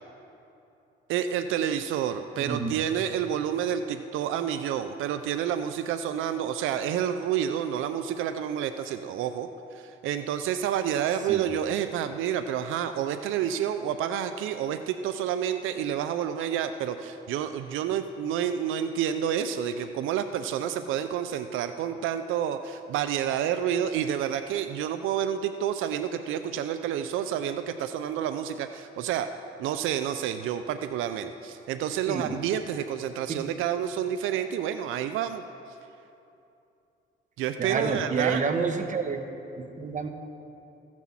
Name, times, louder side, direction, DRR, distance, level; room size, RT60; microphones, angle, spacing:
voice 1, 1.1-29.3 29.6-35.4 37.4-38.4, right 9 dB, 90° right, 9 dB, 0.5 m, -29 dB
voice 2, 2.4-2.8 11.3-11.4 32.1-32.3 33.3-33.5 37.6-39.2 39.6-40.1, right 5 dB, 40° right, 6 dB, 1.1 m, -29 dB
15.0 x 6.2 x 7.2 m, 2.7 s
cardioid pair, 90°, 20 cm